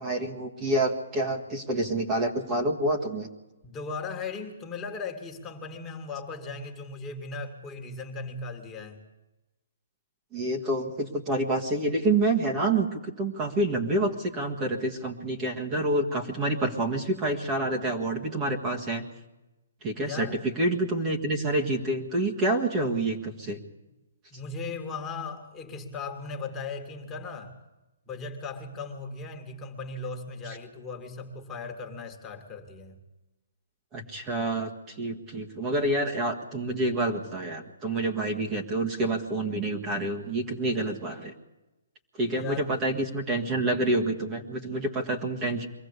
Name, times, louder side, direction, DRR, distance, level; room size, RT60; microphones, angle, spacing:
voice 1, 0.0-3.3 10.3-19.0 19.8-23.6 33.9-41.3 42.2-45.7, right 2 dB, 20° right, 1 dB, 1.8 m, -28 dB
voice 2, 3.6-9.0 20.0-20.4 24.3-27.5 28.1-33.0 42.2-42.7, left 4 dB, 15° left, 2 dB, 2.2 m, -37 dB
23.5 x 15.0 x 8.2 m, 1.0 s
hypercardioid pair, 160°, 0 cm